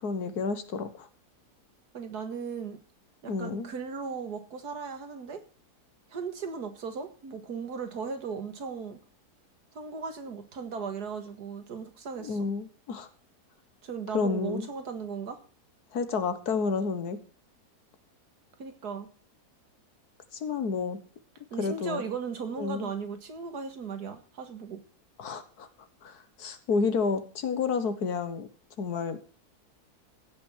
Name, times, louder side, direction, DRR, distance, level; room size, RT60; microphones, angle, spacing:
voice 1, 0.0-1.1 3.3-3.7 12.2-13.1 14.1-14.7 15.9-17.2 20.4-21.0 21.6-22.0 22.6-22.9 25.2-25.7 26.0-28.5 28.8-29.2, left 4 dB, 75° left, 11 dB, 1.8 m, -30 dB
voice 2, 1.9-2.8 3.2-5.4 6.1-9.0 9.7-12.4 13.8-15.4 18.6-19.1 21.5-24.8, right 5 dB, 75° right, 7 dB, 2.2 m, -37 dB
15.5 x 6.2 x 7.3 m, 0.40 s
omnidirectional pair, 1.7 m